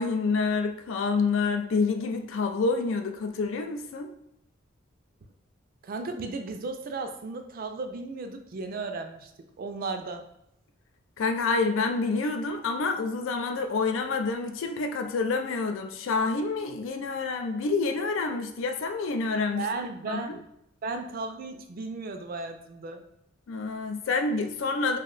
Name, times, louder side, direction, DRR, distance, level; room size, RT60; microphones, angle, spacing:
voice 1, 0.0-4.1 11.2-19.7 20.1-20.2 23.5-25.0, left 4 dB, 75° left, 7 dB, 0.4 m, -28 dB
voice 2, 5.8-9.3 9.6-10.2 19.5-20.4 20.8-23.0, right 3 dB, 45° right, 6 dB, 0.3 m, -35 dB
2.7 x 2.1 x 3.8 m, 0.79 s
head